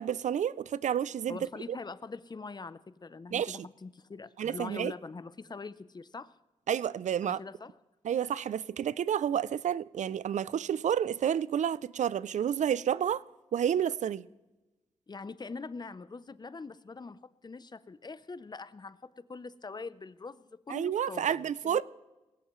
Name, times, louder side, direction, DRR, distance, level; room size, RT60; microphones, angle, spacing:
voice 1, 0.0-1.4 3.3-3.7 4.4-4.9 6.7-7.4 8.0-13.2 13.5-14.3 20.7-21.8, right 9 dB, 85° right, 0.4 m, -30 dB
voice 2, 1.3-6.3 7.2-7.8 15.1-21.8, left 4 dB, 35° left, 0.6 m, -43 dB
19.5 x 17.5 x 3.1 m
cardioid pair, 70°, 12 cm